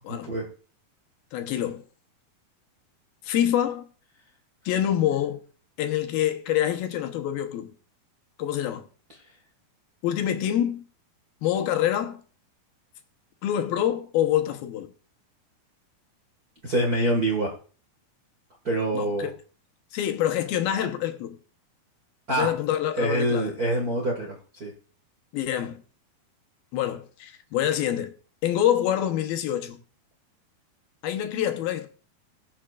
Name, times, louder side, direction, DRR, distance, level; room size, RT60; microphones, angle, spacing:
voice 1, 1.3-1.8 3.2-3.9 4.7-5.4 5.8-7.7 8.4-8.8 10.0-10.8 11.4-12.2 13.4-14.9 18.9-19.3 19.9-21.4 22.3-23.5 25.3-25.8 26.7-28.1 28.4-29.8 31.0-31.9, left 11 dB, 80° left, 2.8 m, -26 dB
voice 2, 16.6-17.5 18.6-19.3 22.3-22.5 23.0-24.7, right 1 dB, 45° right, 1.2 m, -25 dB
21.0 x 7.3 x 2.4 m
omnidirectional pair, 4.4 m